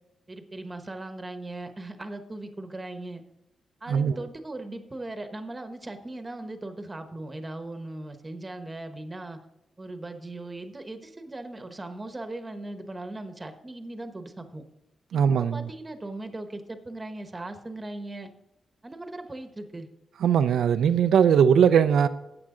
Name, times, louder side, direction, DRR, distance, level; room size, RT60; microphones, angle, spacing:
voice 1, 0.3-3.2 3.8-9.4 9.8-14.6 15.1-18.3 18.8-19.9, right 2 dB, 20° right, 1.0 m, -38 dB
voice 2, 15.1-15.6 20.2-22.1, right 8 dB, 85° right, 0.5 m, -20 dB
13.5 x 8.7 x 3.8 m
wide cardioid pair, 145°, 0 cm